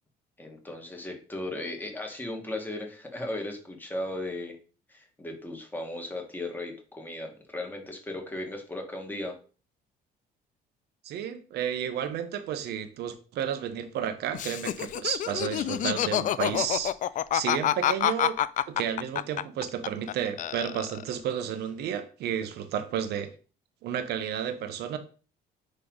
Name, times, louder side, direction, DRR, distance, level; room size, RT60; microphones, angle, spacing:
voice 1, 0.4-4.6 4.9-9.4, left 1 dB, 10° left, 2.0 m, -36 dB
voice 2, 11.0-17.0 17.3-23.3 23.8-25.0, right 9 dB, 75° right, 1.1 m, -32 dB
Laughter, 14.3-20.1 20.4-21.2, left 11 dB, 50° left, 0.4 m, -27 dB
10.0 x 3.4 x 4.0 m
cardioid pair, 110°, 17 cm